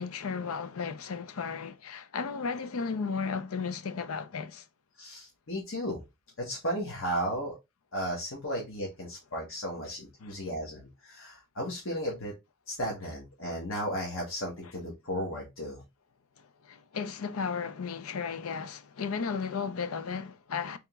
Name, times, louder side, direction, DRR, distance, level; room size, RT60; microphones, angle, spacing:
voice 1, 0.0-4.7 10.2-10.4 16.4-20.8, left 5 dB, 80° left, 0.5 m, -34 dB
voice 2, 5.0-6.0 6.4-7.5 7.9-12.3 12.7-15.8, equal, 65° left, 1.1 m, -34 dB
3.5 x 2.9 x 3.4 m
head